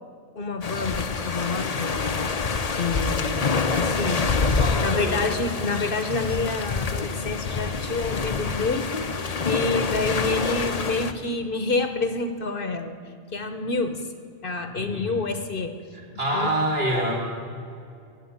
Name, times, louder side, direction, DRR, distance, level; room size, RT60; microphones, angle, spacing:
voice 1, 0.4-2.3 2.8-4.3 4.8-9.1 9.4-13.0 13.3-14.0 14.4-15.7 16.3-16.5, left 3 dB, 55° left, 8 dB, 1.2 m, -28 dB
sound 1, 0.6-11.1, left 4 dB, 40° left, 0.8 m, -26 dB
voice 2, 4.6-5.2 14.7-15.2 16.2-17.1, right 1 dB, 60° right, -3 dB, 4.5 m, -26 dB
15.5 x 9.1 x 9.5 m, 2.4 s
omnidirectional pair, 1.1 m